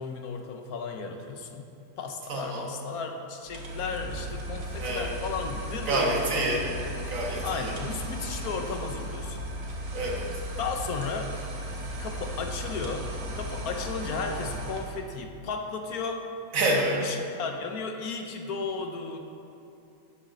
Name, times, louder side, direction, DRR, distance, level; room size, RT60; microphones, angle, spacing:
voice 1, 0.0-1.6 2.0-6.4 7.4-9.4 10.6-11.3 12.0-16.3 17.0-19.2, left 4 dB, 85° left, 5 dB, 1.3 m, -34 dB
voice 2, 2.3-2.7 4.8-5.1 5.9-6.7 7.1-7.7 9.9-10.3 16.5-17.0, right 1 dB, 65° right, -1 dB, 1.7 m, -27 dB
sound 1, 3.5-15.0, right 1 dB, 80° right, 1.6 m, -36 dB
sound 2, 4.0-14.7, equal, 30° left, 1.7 m, -44 dB
11.5 x 7.5 x 3.8 m, 2.7 s
omnidirectional pair, 1.5 m